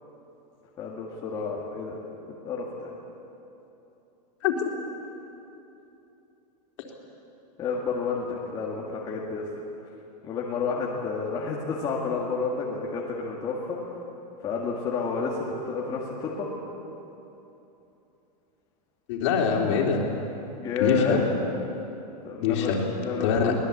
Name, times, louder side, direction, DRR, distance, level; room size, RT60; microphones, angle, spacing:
voice 1, 0.8-2.0 2.4-2.9 7.6-9.4 10.2-13.8 14.4-16.5 20.5-21.2 22.2-23.6, left 5 dB, 20° left, -4 dB, 1.9 m, -30 dB
voice 2, 19.1-20.0 20.8-21.2 22.4-22.8 23.2-23.6, left 6 dB, 45° left, 1 dB, 3.5 m, -24 dB
24.0 x 19.5 x 8.6 m, 3.0 s
supercardioid pair, 175°, 21 cm